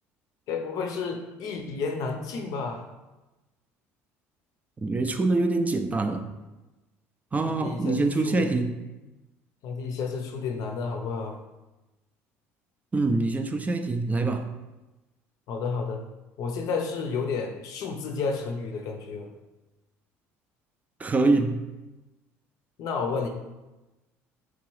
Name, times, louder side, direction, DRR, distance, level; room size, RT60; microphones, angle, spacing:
voice 1, 0.5-2.8 7.5-8.6 9.6-11.4 15.5-16.0 16.4-19.3 22.8-23.3, left 5 dB, 65° left, 4 dB, 0.5 m, -31 dB
voice 2, 4.8-6.2 7.3-8.8 12.9-14.5 21.0-21.6, right 3 dB, 20° right, 7 dB, 0.4 m, -25 dB
3.8 x 3.0 x 3.1 m, 1.1 s
supercardioid pair, 80°, 7 cm